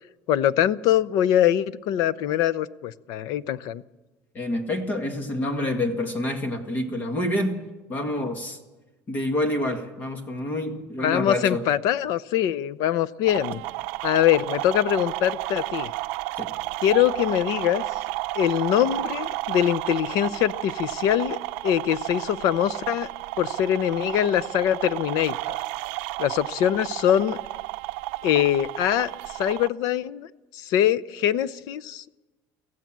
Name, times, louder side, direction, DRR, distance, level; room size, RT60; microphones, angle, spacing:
voice 1, 0.3-3.8 11.0-13.6 14.0-15.9 16.8-17.8 18.4-21.4 21.6-23.1 23.4-25.6 26.2-27.4 28.2-30.3 30.5-32.1, left 11 dB, 55° left, 18 dB, 0.7 m, -23 dB
voice 2, 4.3-7.6 7.9-8.6 9.1-11.6 16.4-16.5, left 1 dB, 25° left, 6 dB, 1.8 m, -27 dB
sound 1, 13.2-29.7, right 19 dB, 75° right, 0.6 m, -32 dB
24.5 x 15.5 x 7.5 m, 1.2 s
cardioid pair, 165°, 7 cm